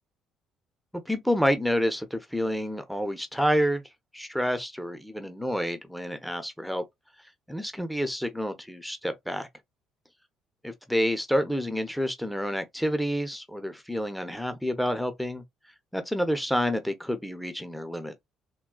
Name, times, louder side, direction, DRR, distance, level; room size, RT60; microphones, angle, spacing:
voice 1, 0.9-3.8 4.1-6.8 7.5-9.5 10.9-15.4 15.9-18.1, equal, ahead, 0.7 m, -28 dB
3.7 x 2.3 x 2.3 m
hypercardioid pair, 55°, 0 cm